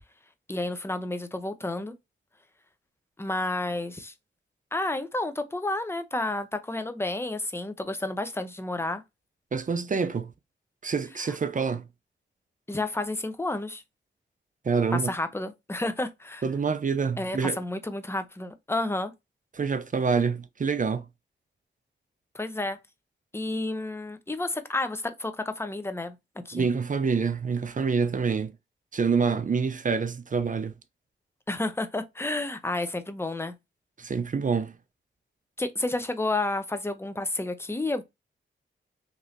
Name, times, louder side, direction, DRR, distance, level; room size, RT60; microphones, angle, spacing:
voice 1, 0.5-1.9 3.2-4.1 4.7-9.0 11.3-11.4 12.7-13.8 14.9-16.5 17.2-19.1 22.3-22.8 23.3-26.7 31.5-33.5 35.6-38.0, left 2 dB, 10° left, 0.6 m, -31 dB
voice 2, 9.5-10.3 10.8-11.8 14.6-15.1 16.4-17.6 19.6-21.0 26.5-28.5 28.9-30.7 34.0-34.7, right 5 dB, 40° right, 0.5 m, -26 dB
3.0 x 2.8 x 2.5 m
cardioid pair, 55°, 21 cm